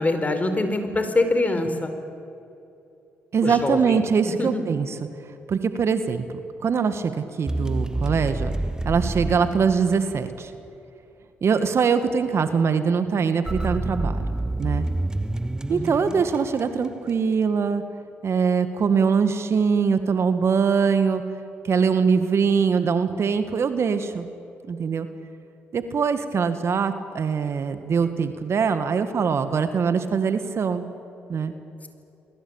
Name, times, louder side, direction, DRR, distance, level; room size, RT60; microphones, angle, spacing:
voice 1, 0.0-1.9 3.4-4.0 4.3-4.6 15.7-16.2, left 2 dB, 30° left, 8 dB, 4.6 m, -24 dB
voice 2, 3.3-4.9 5.5-6.3 6.6-8.5 8.8-10.5 11.4-14.2 14.6-14.9 15.7-17.8 18.2-21.2 21.6-24.3 24.7-25.1 25.7-30.9 31.3-31.5, right 6 dB, 55° right, 9 dB, 1.9 m, -22 dB
sound 1, 7.5-10.5 13.5-16.9, right 2 dB, 15° right, 0.9 m, -28 dB
29.5 x 22.0 x 9.0 m, 2.8 s
hypercardioid pair, 50°, 5 cm